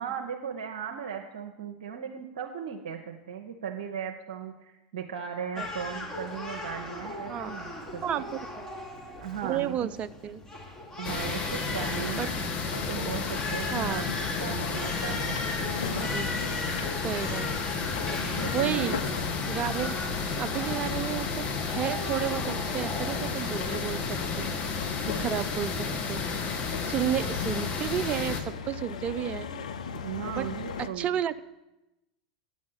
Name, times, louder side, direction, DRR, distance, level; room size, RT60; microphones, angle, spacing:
voice 1, 0.0-8.3 9.2-9.9 11.0-12.4 12.7-14.1 14.4-15.4 18.2-19.0 30.0-31.1, right 8 dB, 65° right, 1 dB, 0.7 m, -37 dB
Crying sobbing, 5.6-24.4, left 2 dB, 15° left, 1.6 m, -38 dB
voice 2, 9.4-10.4 12.2-12.3 13.7-14.0 15.6-16.3 17.0-17.5 18.5-19.0 19.5-20.0 20.4-24.5 25.0-26.2 26.8-29.5 30.3-30.5 30.8-31.5, right 10 dB, 30° right, 15 dB, 0.4 m, -32 dB
sound 1, 11.0-28.4, left 5 dB, 35° left, 1.2 m, -32 dB
sound 2, 12.6-30.9, left 6 dB, 70° left, 0.6 m, -39 dB
9.5 x 6.3 x 5.6 m, 0.96 s
figure-of-eight pair, 90°, 4 cm